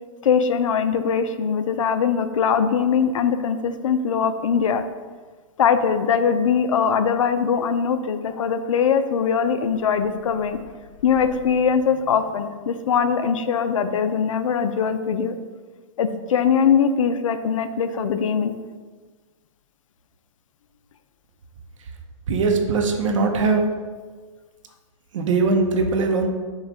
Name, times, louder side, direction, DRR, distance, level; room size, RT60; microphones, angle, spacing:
voice 1, 0.2-4.8 5.6-10.6 11.0-15.4 16.0-18.6, left 7 dB, 85° left, 10 dB, 0.4 m, -21 dB
voice 2, 22.3-23.6 25.1-26.3, right 4 dB, 75° right, 4 dB, 0.7 m, -20 dB
5.2 x 2.3 x 3.6 m, 1.4 s
hypercardioid pair, 130°, 16 cm